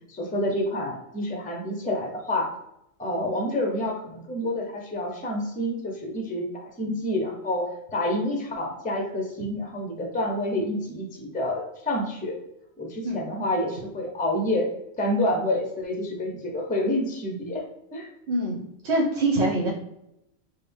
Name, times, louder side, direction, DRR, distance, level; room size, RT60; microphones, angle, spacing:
voice 1, 0.1-2.5 3.0-12.4 12.8-14.7 15.0-17.6 17.9-18.1, left 1 dB, 10° left, 1 dB, 0.5 m, -28 dB
voice 2, 18.3-19.7, right 2 dB, 65° right, -3 dB, 1.1 m, -24 dB
6.2 x 2.1 x 3.4 m, 0.82 s
omnidirectional pair, 1.3 m